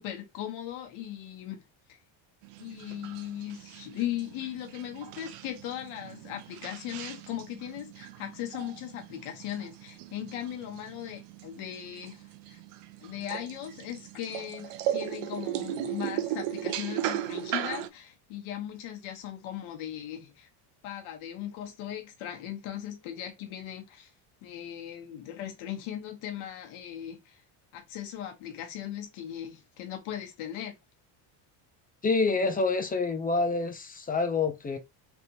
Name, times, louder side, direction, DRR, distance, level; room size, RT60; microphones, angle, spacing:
voice 1, 0.0-1.6 1.9-2.0 2.6-12.6 13.0-20.5 20.8-24.1 24.4-27.4 27.7-30.7, left 11 dB, 70° left, 1.2 m, -38 dB
sound 1, 2.4-17.9, right 12 dB, 85° right, 0.6 m, -37 dB
voice 2, 32.0-34.8, left 3 dB, 20° left, 0.4 m, -27 dB
3.4 x 2.8 x 2.6 m
cardioid pair, 125°, 50 cm